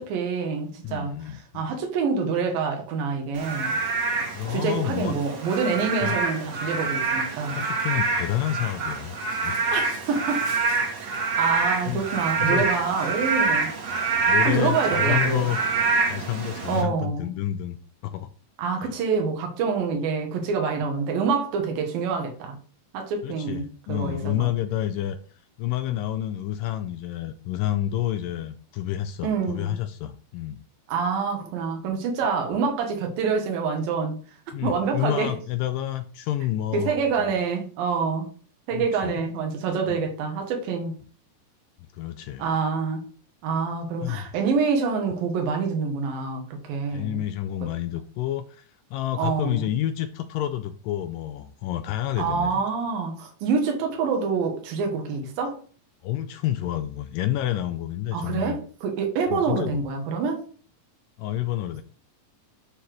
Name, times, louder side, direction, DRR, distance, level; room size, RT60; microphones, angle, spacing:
voice 1, 0.0-3.8 4.5-7.6 9.7-9.8 10.1-10.5 11.0-13.7 14.4-15.5 16.7-17.3 18.6-22.6 22.9-24.5 29.2-29.8 30.9-34.2 34.6-35.4 36.7-38.3 38.7-40.9 42.4-43.0 43.4-47.2 49.2-49.7 52.2-55.6 58.1-60.4, right 5 dB, 80° right, 3.1 m, -26 dB
voice 2, 0.8-1.7 4.3-5.2 6.0-6.2 7.5-9.8 11.9-12.1 12.4-12.7 14.3-15.6 16.0-18.3 18.8-18.9 23.2-30.6 34.5-37.3 38.7-39.3 39.9-40.0 41.9-42.5 44.0-44.3 46.9-52.6 56.0-58.6 59.3-59.8 61.2-61.8, left 13 dB, 80° left, 2.0 m, -29 dB
Frog / Rain, 3.3-16.8, right 4 dB, 60° right, 1.2 m, -26 dB
11.5 x 4.0 x 3.2 m
omnidirectional pair, 4.2 m